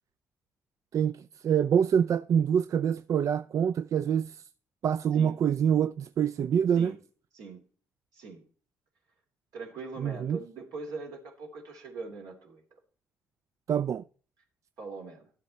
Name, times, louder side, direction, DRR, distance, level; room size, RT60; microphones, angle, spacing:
voice 1, 0.9-4.4 4.8-6.9 10.0-10.4 13.7-14.0, right 8 dB, 50° right, 0.4 m, -26 dB
voice 2, 9.5-12.6 14.8-15.3, right 4 dB, 70° right, 3.0 m, -41 dB
12.5 x 7.6 x 4.2 m
hypercardioid pair, 50°, 7 cm